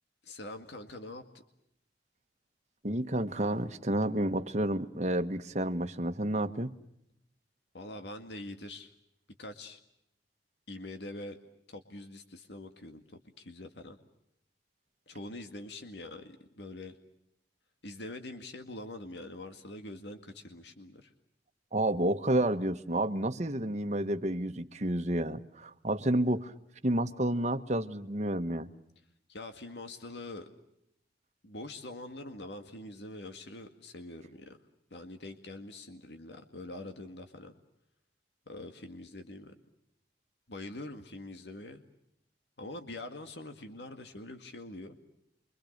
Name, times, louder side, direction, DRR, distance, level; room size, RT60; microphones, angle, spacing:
voice 1, 0.2-1.2 7.7-8.9 9.4-9.8 10.7-11.4 11.7-13.0 13.4-14.0 15.1-16.9 17.8-21.1 29.3-30.5 31.4-34.6 34.9-37.5 38.5-39.5 40.5-41.8 42.6-45.0, left 2 dB, 70° left, 6 dB, 2.0 m, -44 dB
voice 2, 2.8-6.7 21.7-26.5 26.8-28.7, right 1 dB, 40° right, 9 dB, 1.3 m, -30 dB
29.5 x 24.5 x 6.6 m, 0.79 s
head